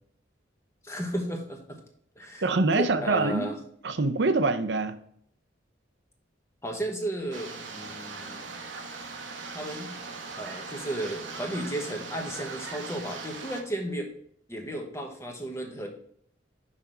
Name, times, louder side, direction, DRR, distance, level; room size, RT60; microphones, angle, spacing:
voice 1, 0.8-1.8 2.2-2.4 2.7-3.6 6.6-8.5 9.5-9.9 10.4-14.1 14.5-15.9, right 1 dB, 15° left, 1.0 m, -34 dB
voice 2, 2.4-3.5 3.8-5.0, right 3 dB, 65° right, 0.6 m, -25 dB
sound 1, 7.3-13.6, right 4 dB, 85° right, 1.0 m, -40 dB
5.8 x 5.3 x 4.4 m
head